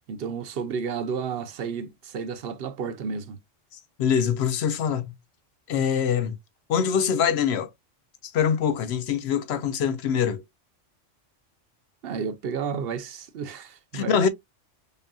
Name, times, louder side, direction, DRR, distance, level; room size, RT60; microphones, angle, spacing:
voice 1, 0.1-3.4 12.0-14.3, right 6 dB, 60° right, 0.8 m, -32 dB
voice 2, 3.7-5.2 5.7-6.4 6.7-7.7 8.2-10.4 13.9-14.3, left 7 dB, 65° left, 0.8 m, -24 dB
5.4 x 2.5 x 2.2 m
omnidirectional pair, 1.2 m